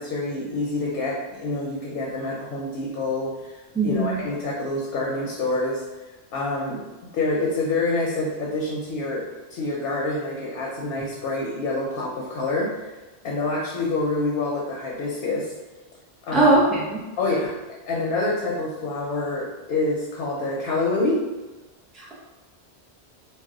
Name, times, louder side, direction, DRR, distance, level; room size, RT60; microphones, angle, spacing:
voice 1, 0.0-3.5 3.8-5.8 6.3-6.8 7.1-9.2 9.5-12.7 13.2-15.5 16.3-16.5 17.2-17.5 17.9-21.2, left 2 dB, 65° left, -3 dB, 0.7 m, -26 dB
voice 2, 3.7-4.1 16.3-17.0, right 2 dB, ahead, -7 dB, 0.4 m, -19 dB
2.3 x 2.2 x 3.7 m, 1.2 s
omnidirectional pair, 1.1 m